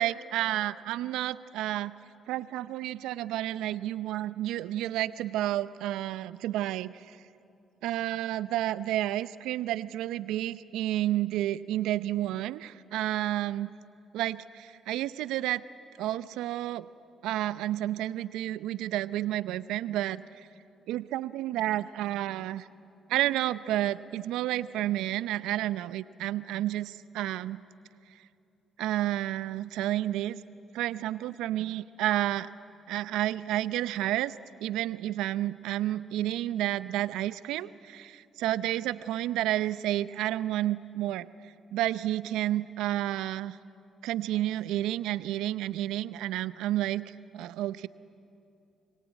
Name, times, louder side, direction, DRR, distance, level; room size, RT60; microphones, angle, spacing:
voice 1, 0.0-1.9 2.3-7.2 7.8-13.7 14.1-15.6 16.0-16.9 17.2-20.5 20.9-22.7 23.1-27.6 28.8-30.4 30.7-32.5 32.9-34.3 34.6-41.3 41.7-43.6 44.0-47.9, right 14 dB, 80° right, 16 dB, 0.6 m, -30 dB
26.0 x 22.5 x 9.4 m, 2.6 s
hypercardioid pair, 50°, 0 cm